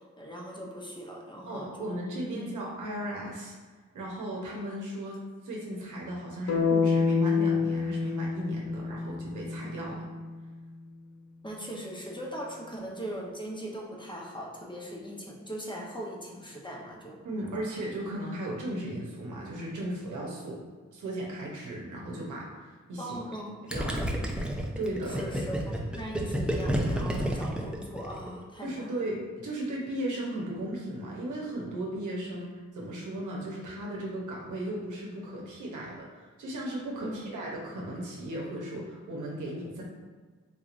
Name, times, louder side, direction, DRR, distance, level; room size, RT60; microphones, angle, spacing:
voice 1, 0.0-1.9 2.3-2.5 11.4-17.2 23.0-23.5 23.9-24.2 25.0-29.0 37.0-37.2, equal, 15° left, -2 dB, 0.8 m, -40 dB
voice 2, 1.5-3.5 3.9-5.2 5.4-10.1 17.2-20.6 20.9-23.2 23.7-24.0 24.8-25.2 26.2-26.3 28.6-39.8, right 1 dB, 85° right, -3 dB, 0.8 m, -36 dB
sound 1, 6.5-10.5, left 5 dB, 65° left, 0.6 m, -28 dB
Gurgling, 23.7-28.4, equal, 5° right, 0.5 m, -30 dB
3.7 x 2.9 x 2.5 m, 1.4 s
cardioid pair, 45°, 30 cm